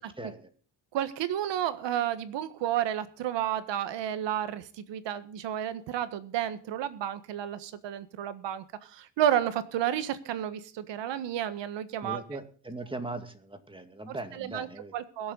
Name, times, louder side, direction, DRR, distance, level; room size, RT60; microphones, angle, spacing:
voice 1, 0.2-0.5 12.0-14.9, right 2 dB, 10° right, 7 dB, 2.2 m, -39 dB
voice 2, 0.9-12.2 14.1-14.7 14.9-15.3, right 11 dB, 80° right, 13 dB, 1.6 m, -31 dB
22.0 x 7.8 x 4.0 m, 0.43 s
cardioid pair, 110°, 43 cm